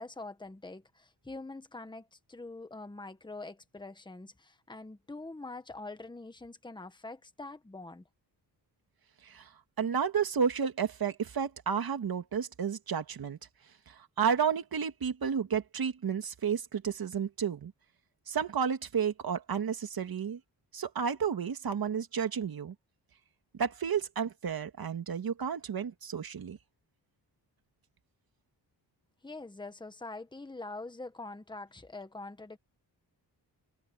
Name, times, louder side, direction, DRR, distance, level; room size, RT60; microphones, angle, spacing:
voice 1, 0.0-8.0 29.2-32.6, left 2 dB, 10° left, 1.5 m, -44 dB
voice 2, 9.8-13.4 13.9-17.7 18.3-20.4 20.7-22.7 23.6-26.6, right 7 dB, 55° right, 2.3 m, -31 dB
wide cardioid pair, 135°, 42 cm